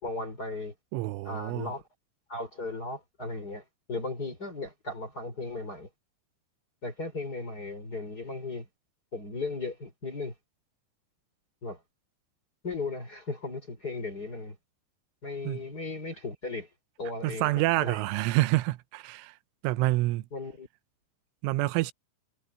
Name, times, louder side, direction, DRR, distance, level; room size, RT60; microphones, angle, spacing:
voice 1, 0.0-0.7 1.2-1.8 2.3-5.9 6.8-8.7 9.1-10.3 11.6-11.8 12.6-14.6 15.2-16.7 17.0-18.0 20.3-20.7, left 3 dB, 20° left, 3.9 m, -36 dB
voice 2, 0.9-1.7 15.4-15.6 17.2-19.3 19.6-20.2 21.4-21.9, right 18 dB, 90° right, 3.2 m, -27 dB
omnidirectional pair, 5.5 m